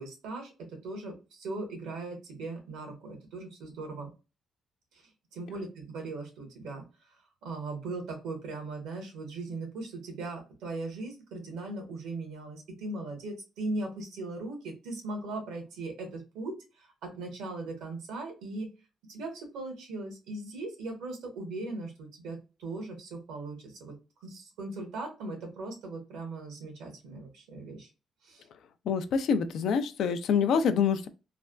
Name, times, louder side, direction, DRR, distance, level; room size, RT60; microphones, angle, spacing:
voice 1, 0.0-4.1 4.9-5.0 5.3-6.8 7.4-18.7 19.1-27.9 28.2-28.4, right 2 dB, 90° right, 1.2 m, -39 dB
voice 2, 28.9-31.1, left 6 dB, 75° left, 0.4 m, -26 dB
3.2 x 2.2 x 2.3 m
cardioid pair, 90°, 0 cm